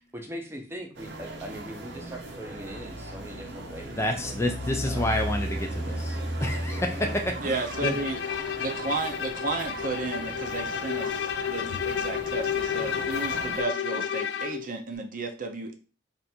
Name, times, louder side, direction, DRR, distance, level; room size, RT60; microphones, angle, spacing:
voice 1, 0.1-4.4 4.8-5.1, right 1 dB, 15° right, 2 dB, 0.7 m, -41 dB
sound 1, 0.9-13.6, right 1 dB, 75° right, 0.9 m, -36 dB
voice 2, 3.9-8.0, left 1 dB, 15° left, 4 dB, 0.4 m, -29 dB
voice 3, 7.4-8.2 8.6-15.8, right 3 dB, 50° right, 4 dB, 0.6 m, -33 dB
Bowed string instrument, 7.7-14.7, left 8 dB, 80° left, 0.4 m, -31 dB
3.4 x 2.6 x 4.3 m, 0.35 s
head